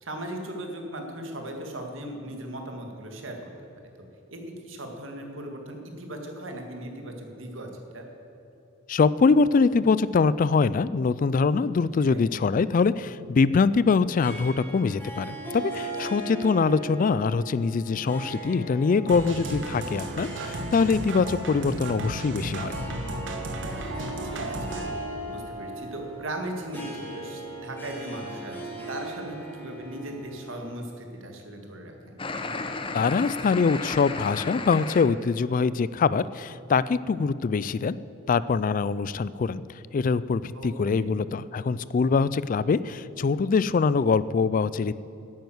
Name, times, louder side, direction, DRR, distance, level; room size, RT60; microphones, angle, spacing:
voice 1, 0.0-3.4 4.0-8.0 12.0-12.2 23.7-24.8 25.3-32.1 40.5-40.7 41.0-41.2, right 1 dB, 85° right, 3 dB, 2.0 m, -38 dB
voice 2, 8.9-22.8 32.9-38.0 38.3-39.6 39.9-44.9, left 4 dB, 45° left, 17 dB, 0.3 m, -23 dB
Harp, 14.2-30.9, right 2 dB, 10° left, 2.6 m, -39 dB
sound 1, 19.1-24.9, right 1 dB, 70° right, 1.2 m, -34 dB
sound 2, 32.2-35.1, left 3 dB, 25° left, 0.7 m, -33 dB
10.5 x 9.2 x 7.9 m, 3.0 s
head